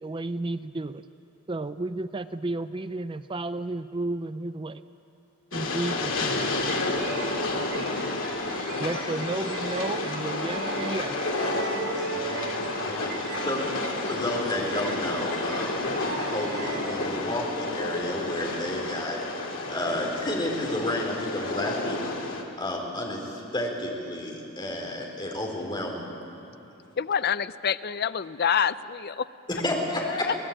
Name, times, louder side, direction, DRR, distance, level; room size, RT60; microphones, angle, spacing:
voice 1, 0.0-1.0 1.5-4.8 5.5-6.5 8.8-11.2, right 2 dB, 25° right, 12 dB, 0.5 m, -32 dB
Train, 5.5-22.4, left 2 dB, 65° left, 2.6 m, -31 dB
sound 1, 5.8-19.3, right 2 dB, 55° right, 3.6 m, -38 dB
voice 2, 11.9-13.7 14.0-15.9 16.1-19.2 19.7-22.0 22.6-26.0 29.5-30.3, left 1 dB, 20° left, -1 dB, 4.3 m, -31 dB
voice 3, 27.0-29.3 30.0-30.3, left 7 dB, 50° left, 15 dB, 0.5 m, -27 dB
23.5 x 19.0 x 8.8 m, 2.9 s
head